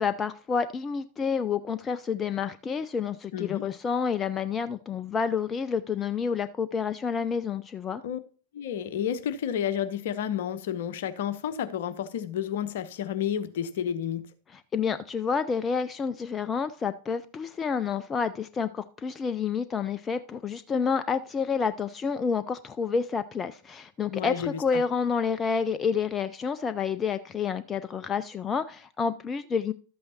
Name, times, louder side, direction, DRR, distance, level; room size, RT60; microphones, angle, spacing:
voice 1, 0.0-8.0 14.5-29.7, left 6 dB, 20° left, 0.4 m, -29 dB
voice 2, 3.3-3.6 8.0-8.2 8.5-14.2 24.1-24.8, left 9 dB, 55° left, 0.9 m, -31 dB
12.5 x 8.4 x 2.9 m
figure-of-eight pair, 90°, 0 cm